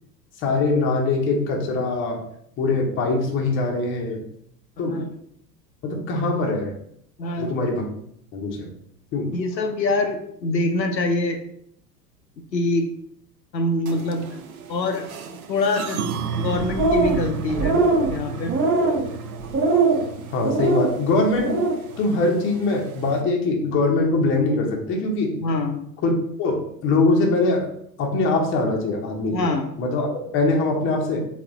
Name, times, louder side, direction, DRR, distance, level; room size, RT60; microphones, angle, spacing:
voice 1, 0.4-2.2 2.6-4.2 4.8-5.0 5.8-6.7 7.4-7.9 8.3-8.7 9.1-9.3 20.3-21.6 22.0-25.3 26.0-26.1 26.4-27.7 28.0-29.4 29.8-31.3, left 3 dB, 25° left, 1 dB, 0.7 m, -22 dB
voice 2, 4.8-5.1 7.2-7.6 9.3-11.4 12.5-12.9 13.5-14.3 14.7-15.1 15.5-16.0 16.4-17.8 18.1-18.6 25.4-25.8 29.3-29.8, left 2 dB, 85° left, 4 dB, 0.6 m, -24 dB
sound 1, 13.9-23.2, right 5 dB, 60° right, 0.6 m, -34 dB
sound 2, 16.6-17.2 17.5-18.1 18.5-19.0 19.5-20.0 20.4-20.9 21.3-21.8, right 3 dB, 25° right, 0.7 m, -20 dB
3.9 x 2.4 x 3.6 m, 0.69 s
figure-of-eight pair, 85°, 50 cm